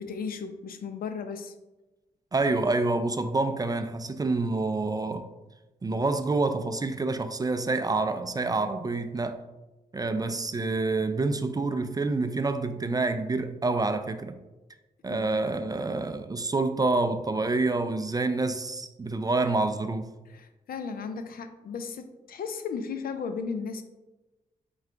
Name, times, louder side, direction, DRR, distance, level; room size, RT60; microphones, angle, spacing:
voice 1, 0.0-1.5 10.1-10.3 15.1-15.4 20.3-23.8, left 5 dB, 65° left, 0.5 m, -35 dB
voice 2, 2.3-5.3 5.8-9.4 9.9-14.4 15.0-20.1, right 3 dB, 25° right, 0.4 m, -27 dB
4.3 x 2.3 x 3.7 m
supercardioid pair, 45°, 17 cm